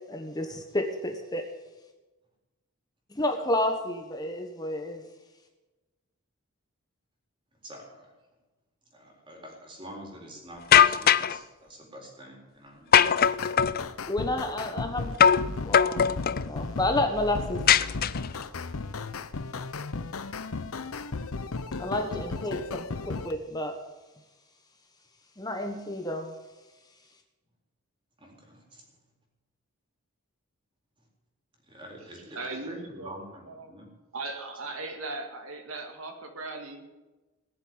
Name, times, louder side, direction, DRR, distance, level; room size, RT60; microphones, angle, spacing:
voice 1, 0.1-1.4 3.1-5.0 14.1-15.2 15.4-17.6 21.8-23.8 25.4-26.3, left 1 dB, 20° left, 4 dB, 1.3 m, -30 dB
voice 2, 7.6-8.1 8.9-13.4 22.0-22.1 28.2-28.8 31.7-33.9, equal, 20° right, 0 dB, 4.1 m, -46 dB
sound 1, 10.7-11.4 12.9-13.8 15.2-15.5 15.7-16.4 17.7-18.4, left 8 dB, 45° left, 0.4 m, -20 dB
sound 2, 13.2-23.3, left 3 dB, 75° left, 0.8 m, -35 dB
voice 3, 32.4-33.2 33.4-33.7 34.1-36.8, right 3 dB, 70° right, 4 dB, 2.2 m, -38 dB
19.0 x 7.5 x 9.7 m, 1.1 s
head